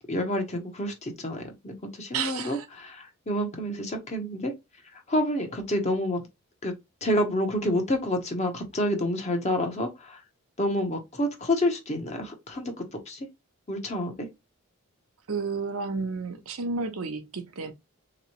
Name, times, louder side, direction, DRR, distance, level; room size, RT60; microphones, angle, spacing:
voice 1, 0.1-4.5 4.9-6.3 6.6-6.7 7.0-10.2 10.6-13.3 13.7-14.3, left 1 dB, 30° left, 0.7 m, -28 dB
voice 2, 2.1-2.7 15.3-17.7, right 4 dB, 75° right, 0.7 m, -31 dB
3.4 x 3.0 x 2.9 m
head